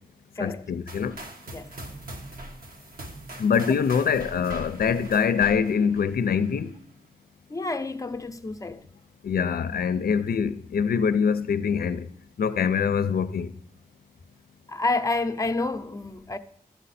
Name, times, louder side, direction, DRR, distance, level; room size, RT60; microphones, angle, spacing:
voice 1, 0.4-1.2 3.4-6.7 9.2-12.1 12.4-13.5, left 6 dB, 85° left, 0.5 m, -24 dB
sound 1, 0.9-6.7, right 1 dB, 75° right, 1.4 m, -42 dB
voice 2, 7.5-8.8 14.7-16.4, left 3 dB, 20° left, 0.6 m, -29 dB
12.5 x 7.1 x 4.1 m
wide cardioid pair, 85°, 15 cm